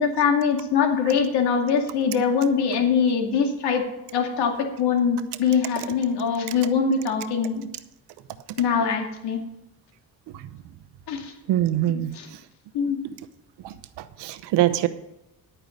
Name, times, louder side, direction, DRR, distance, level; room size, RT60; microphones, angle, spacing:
voice 1, 0.0-3.9 4.1-7.6 8.6-9.4 11.1-11.3 11.9-12.3 12.7-13.0, left 6 dB, 80° left, 3 dB, 2.4 m, -23 dB
voice 2, 11.5-12.1 13.6-14.9, right 13 dB, 85° right, 11 dB, 0.9 m, -24 dB
11.0 x 9.2 x 5.2 m, 0.93 s
cardioid pair, 165°, 40 cm